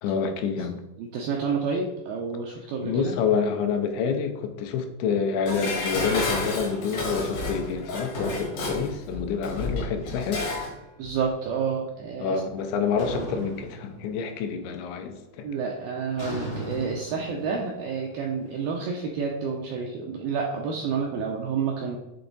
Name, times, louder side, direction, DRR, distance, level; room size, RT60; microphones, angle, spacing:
voice 1, 0.0-0.8 2.8-10.5 12.2-15.5, left 6 dB, 85° left, 5 dB, 3.0 m, -28 dB
voice 2, 1.0-3.1 11.0-12.4 15.4-22.0, right 5 dB, 85° right, 0 dB, 2.1 m, -29 dB
Dishes pots and pans, 5.5-10.7 11.1-11.2, left 2 dB, 65° left, 1.7 m, -31 dB
sound 1, 13.0-14.5 14.8-15.3 16.2-19.2, equal, 40° left, 0.8 m, -38 dB
8.0 x 3.4 x 3.9 m, 0.95 s
omnidirectional pair, 5.0 m